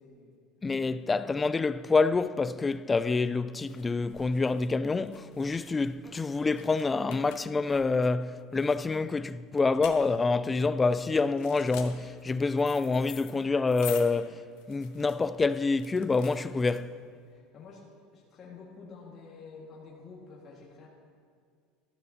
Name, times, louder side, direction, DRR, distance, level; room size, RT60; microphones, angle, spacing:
voice 1, 0.0-0.8 16.9-17.0 17.3-20.9, left 4 dB, 40° left, 1.8 m, -49 dB
voice 2, 0.6-14.4 14.7-16.9, left 3 dB, 20° left, 0.3 m, -27 dB
sound 1, 2.8-17.2, left 11 dB, 70° left, 0.9 m, -48 dB
13.0 x 12.0 x 2.8 m
supercardioid pair, 100°, 0 cm